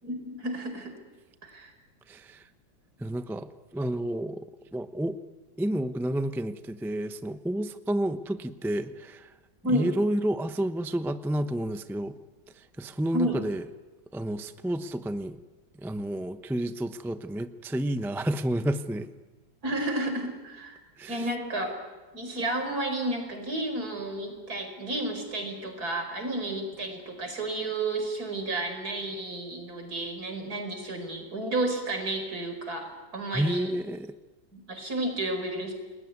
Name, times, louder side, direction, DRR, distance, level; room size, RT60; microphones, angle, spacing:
voice 1, 0.0-0.9 1.4-1.7 9.6-9.9 13.1-13.4 19.6-20.8 21.1-21.8 22.1-33.7 34.5-35.7, right 1 dB, 55° right, 5 dB, 5.5 m, -31 dB
voice 2, 2.1-2.5 3.0-4.4 4.7-5.2 5.6-9.3 9.7-12.2 12.5-13.6 14.1-15.4 15.8-19.1 21.0-21.3 33.3-34.1, right 1 dB, 5° right, 10 dB, 0.4 m, -30 dB
29.5 x 21.0 x 9.5 m, 1.2 s
omnidirectional pair, 2.0 m